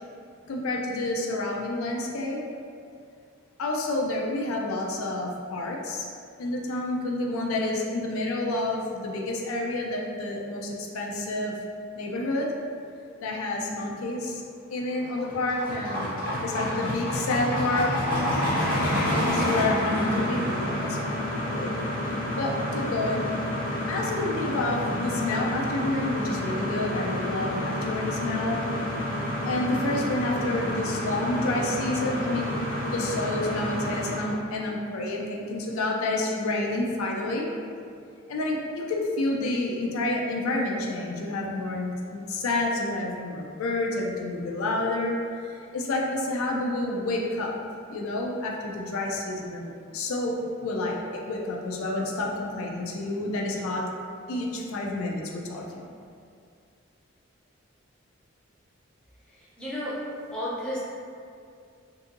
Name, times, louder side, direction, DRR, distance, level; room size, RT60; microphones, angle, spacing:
voice 1, 0.5-2.4 3.6-6.1 6.4-11.6 12.0-12.5 13.2-14.4 14.7-17.9 19.1-21.8 22.1-23.3 23.6-28.6 29.5-32.5 32.8-37.5 38.3-45.1 45.4-47.5 47.9-53.8 54.3-55.9, left 2 dB, 90° left, -1 dB, 0.4 m, -29 dB
sound 1, 15.0-34.4, left 1 dB, 40° left, 0.7 m, -29 dB
voice 2, 59.4-60.0 60.3-60.8, equal, 5° left, -9 dB, 0.5 m, -32 dB
2.6 x 2.5 x 2.5 m, 2.4 s
head